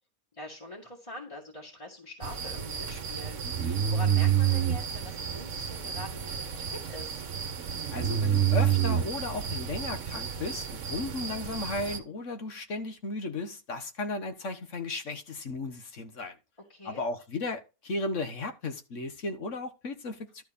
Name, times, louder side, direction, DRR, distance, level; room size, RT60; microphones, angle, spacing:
voice 1, 0.3-7.2 16.7-17.0, left 1 dB, 20° left, 2.2 m, -44 dB
sound 1, 2.2-12.0, right 9 dB, 60° right, 1.4 m, -29 dB
voice 2, 7.9-16.3 16.8-20.4, left 2 dB, 60° left, 1.6 m, -35 dB
12.0 x 4.5 x 5.3 m
omnidirectional pair, 1.5 m